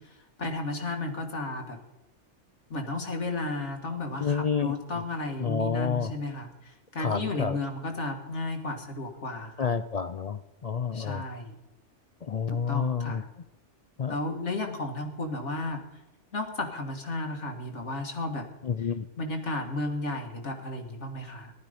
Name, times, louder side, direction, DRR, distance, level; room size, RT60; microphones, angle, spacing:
voice 1, 0.0-1.8 2.7-9.7 10.9-11.6 12.5-13.2 14.1-15.8 16.3-18.5 19.2-21.5, left 2 dB, 70° left, 3 dB, 2.0 m, -33 dB
voice 2, 4.2-4.7 5.4-6.1 7.0-7.6 9.6-11.2 12.2-13.2 14.0-14.1 18.6-19.1, left 6 dB, 55° left, 12 dB, 0.4 m, -29 dB
15.5 x 12.0 x 5.1 m, 0.99 s
omnidirectional pair, 1.2 m